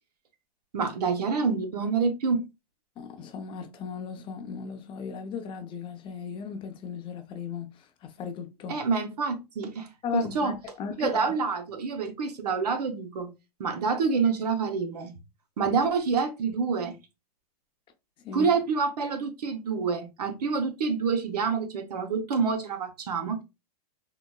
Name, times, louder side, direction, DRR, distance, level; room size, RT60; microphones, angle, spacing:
voice 1, 0.7-2.5 8.7-10.5 11.0-13.3 13.6-15.2 15.6-17.0 18.3-23.4, right 5 dB, 90° right, 0.7 m, -27 dB
voice 2, 3.0-8.8 10.0-11.2 18.2-18.5, left 6 dB, 25° left, 0.6 m, -36 dB
3.8 x 2.0 x 2.2 m
hypercardioid pair, 130°, 20 cm